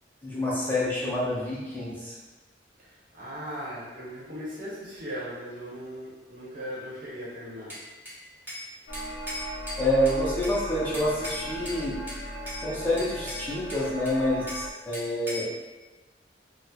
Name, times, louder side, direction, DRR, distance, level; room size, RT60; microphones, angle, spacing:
voice 1, 0.2-2.1 9.8-12.0 12.6-15.5, left 1 dB, 10° left, -8 dB, 0.5 m, -27 dB
voice 2, 2.8-7.7 11.6-11.7, equal, 50° right, -7 dB, 1.0 m, -38 dB
Bell / Glass, 7.7-8.7 8.9-10.6 10.9-11.8 12.1-12.6 13.0-14.7 14.9-15.5, left 1 dB, 10° right, 1.2 m, -38 dB
sound 1, 8.9-14.7, equal, 60° left, 0.4 m, -37 dB
4.1 x 2.1 x 2.3 m, 1.2 s
head